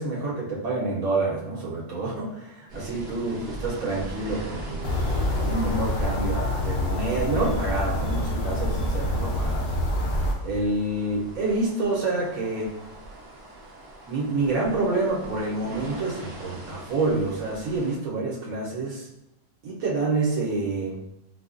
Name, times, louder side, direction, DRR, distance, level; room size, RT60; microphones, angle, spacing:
voice 1, 0.0-5.0 5.4-9.6 10.4-12.7 14.1-19.1 19.6-21.0, right 2 dB, 80° right, -4 dB, 1.3 m, -28 dB
sound 1, 2.7-18.0, right 2 dB, 55° right, 0.8 m, -41 dB
sound 2, 4.8-10.3, left 1 dB, 60° left, 0.8 m, -26 dB
4.4 x 2.3 x 2.5 m, 0.82 s
omnidirectional pair, 1.4 m